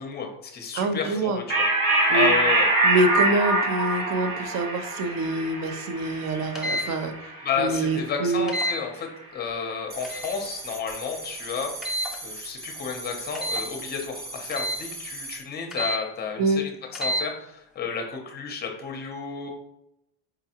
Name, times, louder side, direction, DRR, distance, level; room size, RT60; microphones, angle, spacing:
voice 1, 0.0-1.6 2.1-2.7 7.4-11.7 12.2-19.5, left 5 dB, 25° left, 3 dB, 0.7 m, -31 dB
voice 2, 0.7-1.4 2.1-2.3 2.8-7.1 7.6-8.5 16.4-16.6, right 2 dB, 50° right, 7 dB, 0.6 m, -25 dB
sound 1, 1.5-8.4, right 2 dB, 70° right, 1.3 m, -24 dB
sound 2, 6.5-6.9 8.5-8.8 10.0-10.3 11.8-12.2 13.3-13.7 14.5-14.8 15.7-16.0 16.9-17.2, equal, ahead, 0.3 m, -28 dB
sound 3, 9.9-15.4, right 2 dB, 25° right, 0.9 m, -38 dB
4.7 x 2.3 x 2.8 m, 0.84 s
cardioid pair, 135°, 37 cm